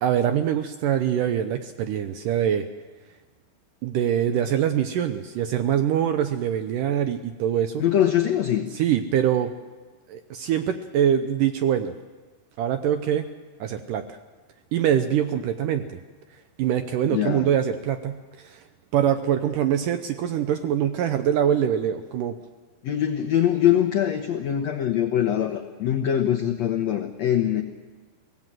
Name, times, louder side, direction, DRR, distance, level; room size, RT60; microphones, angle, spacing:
voice 1, 0.0-2.7 3.8-7.8 8.7-9.5 10.1-11.9 12.6-13.3 13.6-14.2 14.7-15.9 16.6-18.6 18.9-22.4, right 9 dB, 75° right, 8 dB, 2.0 m, -24 dB
voice 2, 7.8-8.7 17.1-17.5 22.8-27.6, left 10 dB, 85° left, 5 dB, 1.5 m, -23 dB
24.0 x 17.5 x 7.6 m, 1.3 s
omnidirectional pair, 4.6 m